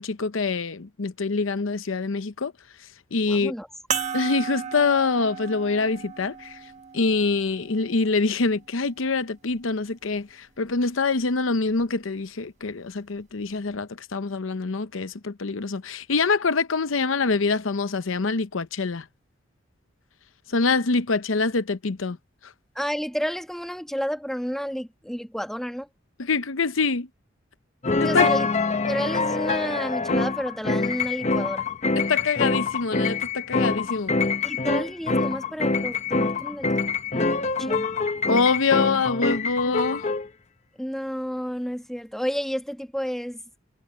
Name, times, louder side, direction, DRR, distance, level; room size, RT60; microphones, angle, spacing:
voice 1, 0.0-2.5 3.1-3.5 4.1-6.6 6.9-19.1 20.5-22.2 22.4-22.5 26.2-27.1 28.0-28.3 32.0-34.2 38.3-40.1, left 4 dB, 80° left, 0.8 m, -25 dB
voice 2, 3.3-3.7 22.7-25.9 28.0-28.5 28.8-31.7 34.4-36.8 37.1-37.9 40.8-43.4, equal, ahead, 1.5 m, -31 dB
sound 1, 3.9-8.7 9.5-9.6 11.7-11.8, right 7 dB, 35° right, 1.3 m, -35 dB
sound 2, 27.8-40.3, left 3 dB, 35° left, 0.9 m, -25 dB
head